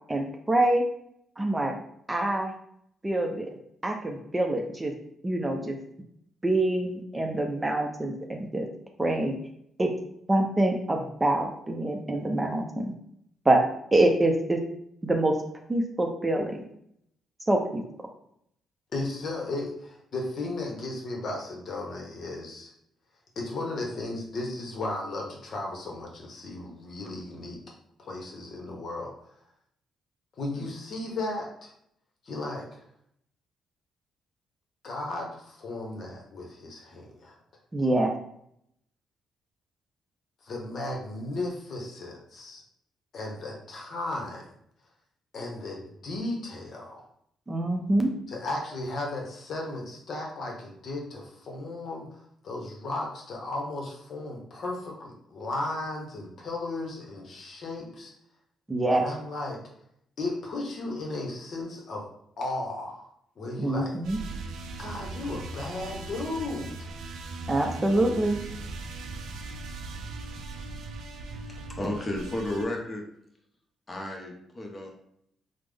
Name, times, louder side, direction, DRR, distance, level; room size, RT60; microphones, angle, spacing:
voice 1, 0.1-0.8 1.4-1.7 2.1-2.5 3.0-3.5 3.8-4.9 5.2-5.8 6.4-8.7 9.0-9.3 9.8-9.9 10.3-12.9 13.5-13.6 13.9-14.6 15.0-15.4 15.7-16.6 17.5-17.8 37.7-38.1 47.5-48.1 58.7-59.1 63.6-64.2 67.5-68.4, right 1 dB, 20° right, 2 dB, 0.5 m, -25 dB
voice 2, 18.9-22.7 23.4-27.6 28.0-29.1 30.4-31.7 32.3-32.8 34.8-37.3 40.5-42.6 43.1-44.4 45.3-47.0 48.3-52.2 52.4-58.1 58.9-59.6 60.2-62.0 62.4-63.1 63.4-63.9 64.8-66.9, left 2 dB, 55° left, -1 dB, 0.9 m, -35 dB
sound 1, 64.0-72.7, right 3 dB, 80° right, 0.4 m, -39 dB
voice 3, 71.4-73.0 73.9-75.1, left 1 dB, 25° left, 1 dB, 0.8 m, -33 dB
3.4 x 2.0 x 3.4 m, 0.72 s
cardioid pair, 90°, 0 cm